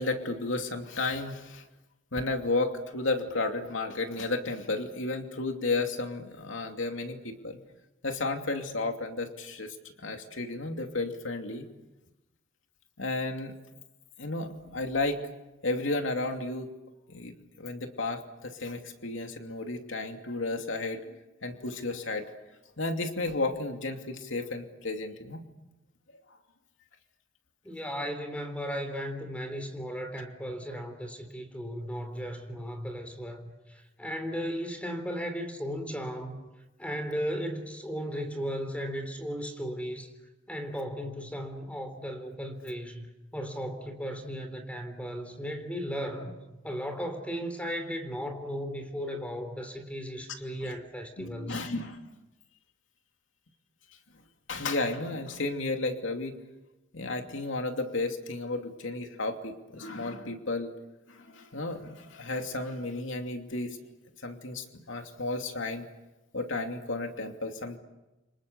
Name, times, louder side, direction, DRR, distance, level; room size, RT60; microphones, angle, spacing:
voice 1, 0.0-1.6 2.1-7.6 8.0-11.7 13.0-13.5 14.2-15.2 15.6-16.7 17.1-22.3 22.8-25.4 50.6-50.7 51.2-52.0 54.5-56.4 56.9-60.7 61.1-63.8 64.2-65.9 66.3-67.8, left 2 dB, 90° left, 4 dB, 2.8 m, -33 dB
voice 2, 27.6-36.4 36.8-40.1 40.5-43.1 43.3-46.3 46.6-51.6, equal, 5° left, 6 dB, 3.5 m, -36 dB
29.5 x 26.5 x 7.0 m, 1.0 s
head